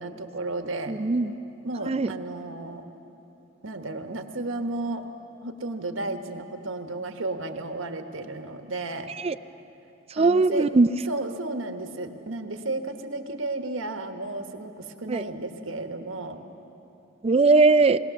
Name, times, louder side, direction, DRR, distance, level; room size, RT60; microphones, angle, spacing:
voice 1, 0.0-1.0 1.6-2.9 3.6-5.1 5.4-9.1 10.2-10.7 11.1-16.5, right 2 dB, 85° right, 7 dB, 1.3 m, -33 dB
voice 2, 0.9-1.3 1.9-2.1 9.2-9.3 10.2-10.9 15.1-15.2 17.2-18.0, right 3 dB, 30° right, 12 dB, 0.4 m, -19 dB
20.5 x 18.5 x 7.0 m, 2.8 s
head